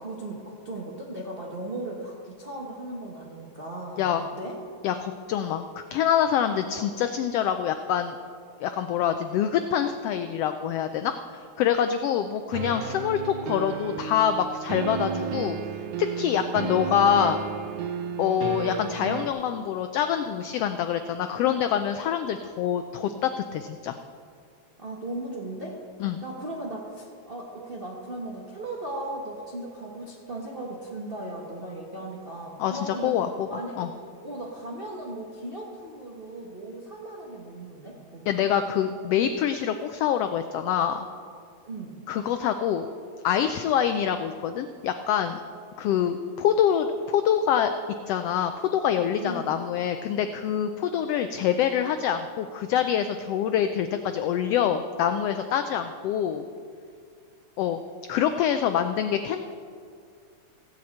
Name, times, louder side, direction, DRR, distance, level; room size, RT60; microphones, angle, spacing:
voice 1, 0.0-4.6 24.8-25.8 26.2-33.2 33.5-33.9 34.2-38.5 41.6-42.0 49.2-49.5, right 1 dB, 45° right, -3 dB, 0.7 m, -37 dB
voice 2, 4.8-8.2 8.6-15.6 16.0-17.4 18.2-24.0 26.0-26.2 32.6-33.5 33.8-33.9 38.3-41.1 42.1-42.9 43.2-45.4 45.8-47.7 48.1-56.4 57.6-57.8 58.1-59.4, left 9 dB, 90° left, 8 dB, 1.3 m, -25 dB
sound 1, 12.5-19.3, right 6 dB, 85° right, 2.2 m, -32 dB
17.0 x 5.9 x 8.5 m, 2.2 s
omnidirectional pair, 3.3 m